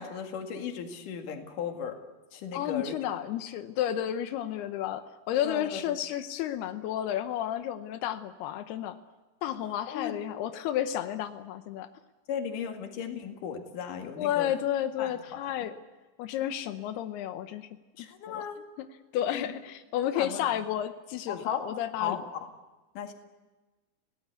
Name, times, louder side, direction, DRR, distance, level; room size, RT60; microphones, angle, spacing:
voice 1, 0.0-2.0 2.3-2.9 5.4-5.8 9.9-10.2 12.3-14.5 15.0-15.7 18.0-18.6 19.3-19.5 20.1-20.6 21.3-21.7 22.0-22.5 22.9-23.1, left 7 dB, 50° left, 4 dB, 2.8 m, -36 dB
voice 2, 2.5-9.0 9.4-11.9 14.2-15.7 16.2-17.7 18.0-18.1 18.3-18.4 18.8-18.9 19.1-22.2, left 11 dB, 90° left, 8 dB, 2.2 m, -32 dB
29.0 x 18.5 x 8.3 m, 1.2 s
omnidirectional pair, 6.0 m